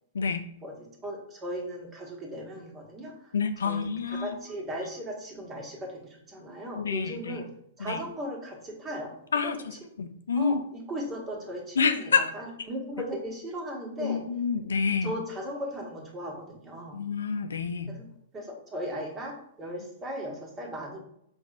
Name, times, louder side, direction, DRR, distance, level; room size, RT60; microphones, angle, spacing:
voice 1, 0.6-3.3 3.6-7.5 7.8-9.2 9.4-9.5 10.4-14.2 15.0-17.0 17.9-18.1 18.3-21.0, equal, 25° right, 0 dB, 1.4 m, -37 dB
voice 2, 3.3-4.4 6.8-7.4 7.8-8.0 9.3-10.6 11.8-12.3 14.0-15.1 16.9-18.0, left 5 dB, 80° left, 9 dB, 0.4 m, -28 dB
5.1 x 3.4 x 2.5 m, 0.72 s
hypercardioid pair, 115°, 0 cm